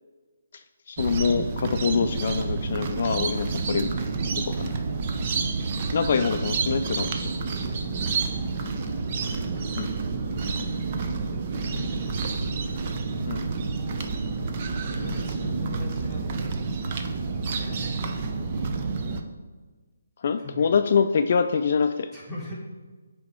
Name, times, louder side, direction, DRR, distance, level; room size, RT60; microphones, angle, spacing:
voice 1, 0.9-4.0 4.4-4.7 5.9-7.3 9.8-9.9 13.3-13.4 20.2-22.1, left 6 dB, 50° left, 8 dB, 0.3 m, -25 dB
sound 1, 1.0-19.2, right 4 dB, 35° right, 0.6 m, -29 dB
voice 2, 11.7-12.5 14.9-17.0 17.5-18.0 18.5-18.7 20.4-20.8 22.1-22.6, equal, 5° right, -8 dB, 2.0 m, -39 dB
8.6 x 3.5 x 4.3 m, 1.3 s
hypercardioid pair, 160°, 0 cm